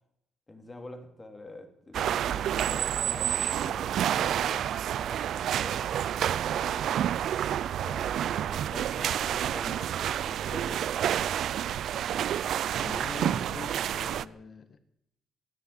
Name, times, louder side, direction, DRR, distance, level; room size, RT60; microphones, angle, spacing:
voice 1, 0.5-7.2 7.8-10.9, left 1 dB, 20° left, 3.1 m, -46 dB
sound 1, 1.9-14.3, right 10 dB, 70° right, 0.5 m, -29 dB
voice 2, 12.7-14.8, left 5 dB, 50° left, 1.9 m, -43 dB
15.5 x 10.5 x 9.0 m
cardioid pair, 90°, 0 cm